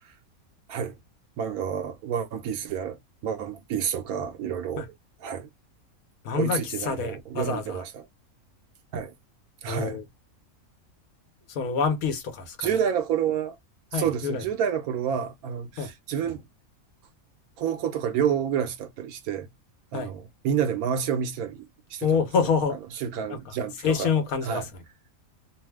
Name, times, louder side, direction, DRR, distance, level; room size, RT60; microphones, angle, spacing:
voice 1, 1.4-4.8 5.2-5.5 6.3-8.0 8.9-9.1 9.6-10.0 12.6-13.6 13.9-16.4 17.6-19.5 19.9-22.1 23.0-24.1 24.4-24.7, right 8 dB, 90° right, 1.2 m, -29 dB
voice 2, 6.2-7.8 9.7-10.0 11.5-12.7 13.9-14.4 15.8-15.9 19.9-20.1 22.0-22.8 23.3-23.4 23.8-24.7, left 6 dB, 80° left, 1.2 m, -27 dB
3.0 x 2.0 x 3.2 m
omnidirectional pair, 1.5 m